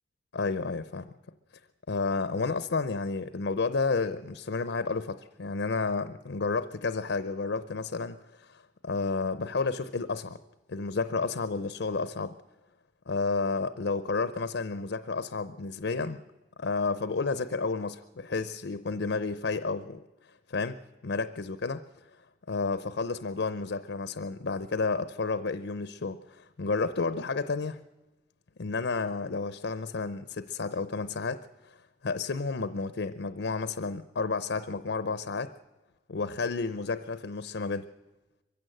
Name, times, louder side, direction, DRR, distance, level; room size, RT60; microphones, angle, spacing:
voice 1, 0.3-1.1 1.9-10.4 10.7-12.3 13.1-16.2 16.6-20.0 20.5-21.8 22.5-27.8 28.6-35.5 36.1-37.9, left 4 dB, 85° left, 13 dB, 0.6 m, -31 dB
22.5 x 15.5 x 7.8 m, 1.1 s
head